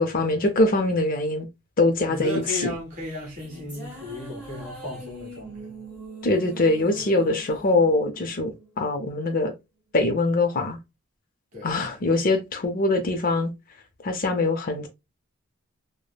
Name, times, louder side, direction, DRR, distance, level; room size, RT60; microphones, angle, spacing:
voice 1, 0.0-1.5 1.8-2.4 6.2-9.5 9.9-10.8 11.6-13.5 14.0-14.9, left 2 dB, 40° left, 0.4 m, -23 dB
voice 2, 2.1-5.8 6.9-7.1 11.5-11.8, left 2 dB, 35° right, 1.2 m, -35 dB
sound 1, 2.7-9.3, right 2 dB, 5° right, 1.3 m, -42 dB
3.2 x 2.0 x 2.2 m
head